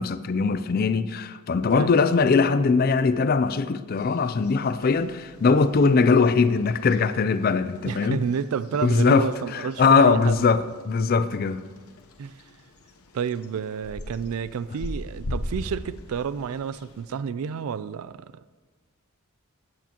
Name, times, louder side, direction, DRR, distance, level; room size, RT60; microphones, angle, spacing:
voice 1, 0.0-8.2 8.8-11.6, left 4 dB, 45° left, 0.4 m, -21 dB
sound 1, 4.0-17.1, left 1 dB, 90° left, 0.9 m, -41 dB
voice 2, 7.9-10.5 12.2-12.4 13.1-18.4, right 6 dB, 80° right, 0.4 m, -30 dB
15.5 x 8.4 x 2.9 m
head